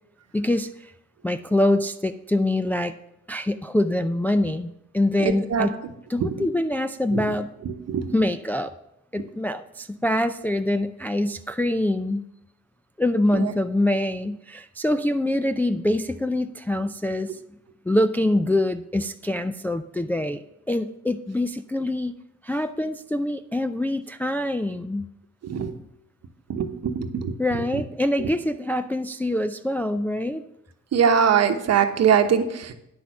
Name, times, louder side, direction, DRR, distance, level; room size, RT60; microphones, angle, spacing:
voice 1, 0.3-0.9 1.2-3.0 3.3-5.8 6.1-7.5 8.1-8.7 9.1-12.3 13.0-17.4 17.9-22.1 22.4-25.1 27.4-30.4, left 1 dB, 5° left, 8 dB, 0.3 m, -25 dB
voice 2, 5.2-5.7 6.2-6.3 7.1-7.2 7.9-8.1 13.3-13.4 25.4-25.7 26.5-27.3 30.9-32.7, right 7 dB, 55° right, 7 dB, 1.0 m, -21 dB
9.4 x 6.2 x 5.9 m, 0.82 s
cardioid pair, 90°, 30 cm